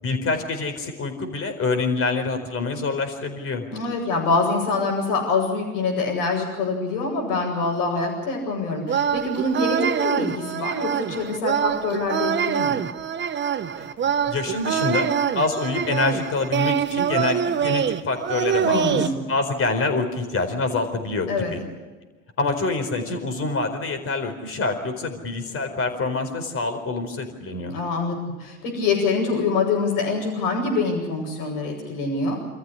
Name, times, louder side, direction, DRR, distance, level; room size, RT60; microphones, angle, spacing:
voice 1, 0.0-3.7 13.8-13.9 14.3-19.0 19.3-21.6 22.4-27.8, left 3 dB, 35° left, 6 dB, 4.5 m, -26 dB
voice 2, 3.7-12.7 18.6-19.3 21.3-21.5 27.7-32.4, left 3 dB, 65° left, -5 dB, 6.6 m, -25 dB
sound 1, 8.9-19.1, right 8 dB, 25° right, 1.1 m, -25 dB
27.0 x 14.5 x 9.9 m, 1.3 s
hypercardioid pair, 85°, 41 cm